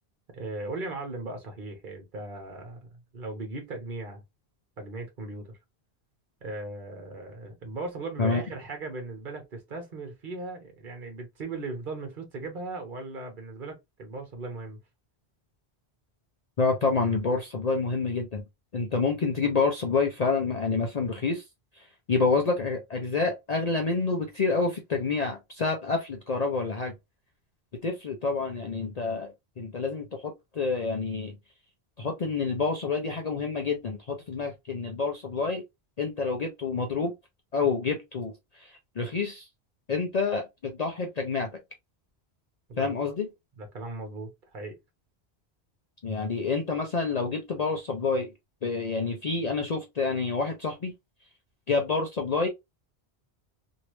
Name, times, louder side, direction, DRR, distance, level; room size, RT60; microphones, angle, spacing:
voice 1, 0.3-4.2 4.8-5.6 6.4-14.8 42.7-42.9 43.6-44.8, right 2 dB, 50° right, 1.2 m, -38 dB
voice 2, 16.6-18.4 18.7-21.4 22.1-26.9 27.8-31.3 32.0-35.6 36.0-37.1 37.5-38.3 39.0-39.5 39.9-41.5 42.8-43.3 46.0-48.3 48.6-50.9 51.7-52.5, left 4 dB, 45° left, 0.6 m, -28 dB
3.0 x 2.7 x 3.0 m
omnidirectional pair, 1.1 m